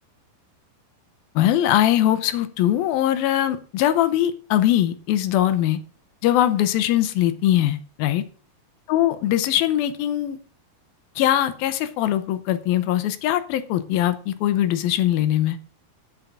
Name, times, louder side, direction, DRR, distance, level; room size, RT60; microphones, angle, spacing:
voice 1, 1.4-5.8 6.2-8.2 8.9-10.4 11.2-15.6, left 12 dB, 80° left, 12 dB, 2.5 m, -21 dB
9.0 x 7.2 x 7.2 m, 0.41 s
omnidirectional pair, 4.5 m